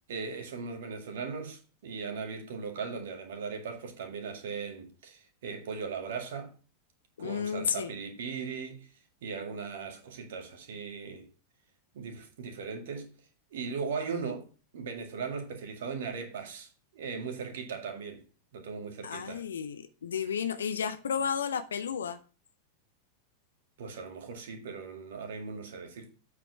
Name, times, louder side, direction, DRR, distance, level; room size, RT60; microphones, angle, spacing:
voice 1, 0.1-6.5 7.2-8.9 9.2-11.3 11.9-13.1 13.5-14.5 14.7-18.2 18.5-19.4 23.8-26.1, right 5 dB, 60° right, 2.0 m, -38 dB
voice 2, 7.2-7.9 19.0-22.2, left 7 dB, 70° left, 0.7 m, -32 dB
8.4 x 5.1 x 5.9 m
figure-of-eight pair, 90°, 0 cm